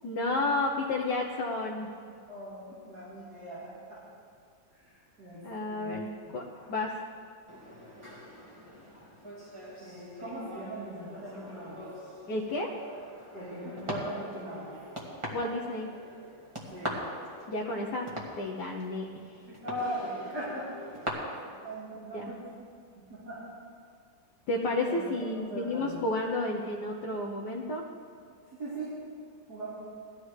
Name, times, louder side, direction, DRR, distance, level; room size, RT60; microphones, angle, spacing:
voice 1, 0.0-1.9 5.4-6.1 6.3-7.0 9.0-9.1 12.3-12.7 15.3-15.9 17.5-18.1 18.4-19.3 22.1-22.3 24.5-27.8, left 2 dB, 65° left, -2 dB, 1.6 m, -31 dB
voice 2, 2.3-4.0 4.7-6.0 9.8-11.8 13.3-14.7 16.7-16.9 19.5-20.7 21.2-22.7 23.0-23.4 24.9-25.0 25.4-26.0 28.6-28.9 29.5-29.7, right 1 dB, 55° right, -11 dB, 4.2 m, -40 dB
sound 1, 7.5-21.1, equal, 15° right, 1.9 m, -43 dB
19.5 x 13.5 x 3.3 m, 2.3 s
omnidirectional pair, 2.0 m